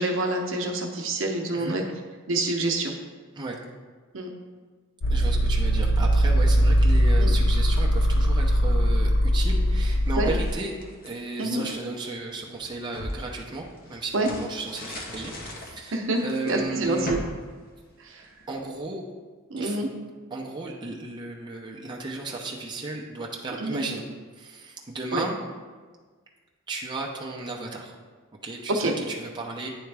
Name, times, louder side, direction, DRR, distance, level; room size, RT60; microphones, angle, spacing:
voice 1, 0.0-1.8 2.3-3.0 4.1-4.3 7.2-7.3 10.2-10.3 11.4-11.6 14.1-14.3 15.9-16.2 16.5-17.2 18.0-18.3 19.5-19.9 23.6-23.8 25.1-25.2 28.7-29.0, right 2 dB, 65° right, 2 dB, 0.8 m, -26 dB
sound 1, 5.0-10.5, equal, 65° left, 0.4 m, -21 dB
voice 2, 5.1-10.8 11.0-17.1 18.5-19.1 19.6-19.9 20.3-24.0 24.3-25.4 26.7-28.0 28.4-29.7, right 3 dB, 20° right, -2 dB, 0.6 m, -34 dB
sound 2, 9.9-11.8 12.4-18.4, left 1 dB, 45° left, 0.9 m, -40 dB
9.5 x 3.4 x 3.4 m, 1.4 s
head